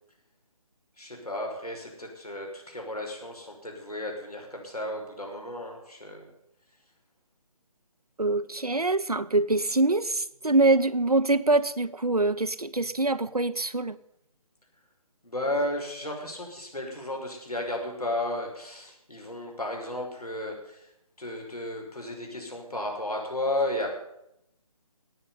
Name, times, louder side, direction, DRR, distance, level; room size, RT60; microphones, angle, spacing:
voice 1, 1.0-6.3 15.2-20.9 21.2-23.9, left 1 dB, 85° left, 1 dB, 5.9 m, -33 dB
voice 2, 8.2-14.0, right 2 dB, 85° right, 11 dB, 1.0 m, -24 dB
18.0 x 7.1 x 9.4 m, 0.80 s
figure-of-eight pair, 150°, 19 cm